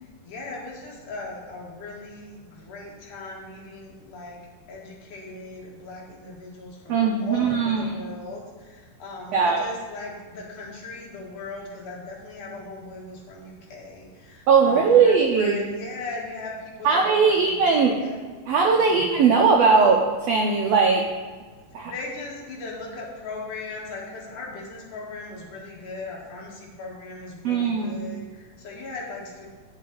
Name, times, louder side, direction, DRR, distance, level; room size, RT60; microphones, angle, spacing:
voice 1, 0.0-4.4 4.7-18.2 18.7-19.3 21.8-29.5, left 3 dB, 70° left, -3 dB, 3.0 m, -38 dB
voice 2, 6.9-7.9 9.3-9.6 14.5-15.5 16.8-18.0 18.5-21.0 21.7-21.9 27.4-28.0, right 5 dB, 85° right, 1 dB, 1.4 m, -19 dB
9.4 x 7.1 x 3.9 m, 1.4 s
omnidirectional pair, 3.8 m